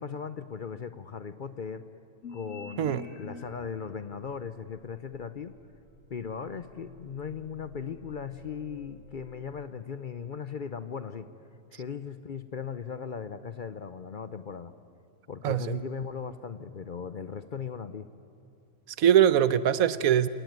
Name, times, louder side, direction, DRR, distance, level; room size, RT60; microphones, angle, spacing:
voice 1, 0.0-1.8 2.3-5.5 6.1-11.3 11.7-14.7 15.3-18.1, left 6 dB, 50° left, 12 dB, 0.7 m, -38 dB
sound 1, 2.2-3.9 4.6-9.5, left 4 dB, 70° left, 2.7 m, -49 dB
voice 2, 15.4-15.8 19.0-20.3, right 10 dB, 85° right, 15 dB, 1.2 m, -22 dB
27.5 x 18.5 x 9.3 m, 2.6 s
omnidirectional pair, 1.4 m